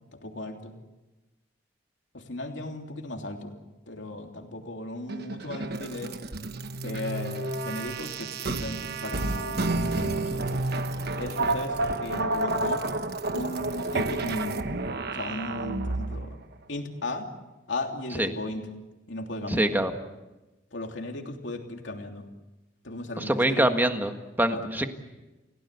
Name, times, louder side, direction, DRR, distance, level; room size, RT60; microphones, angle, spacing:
voice 1, 0.1-0.7 2.1-3.5 3.9-6.2 6.8-10.5 11.1-12.9 13.3-14.6 15.1-16.4 16.7-17.3 17.7-18.7 19.1-19.7 20.7-22.3 22.8-23.7 24.5-24.6, left 1 dB, 65° left, 3 dB, 3.1 m, -36 dB
sound 1, 5.1-16.3, right 2 dB, 55° right, 1.2 m, -30 dB
voice 2, 19.5-19.9 23.2-24.9, right 1 dB, 10° right, 6 dB, 1.7 m, -24 dB
30.0 x 17.0 x 8.4 m, 1.1 s
head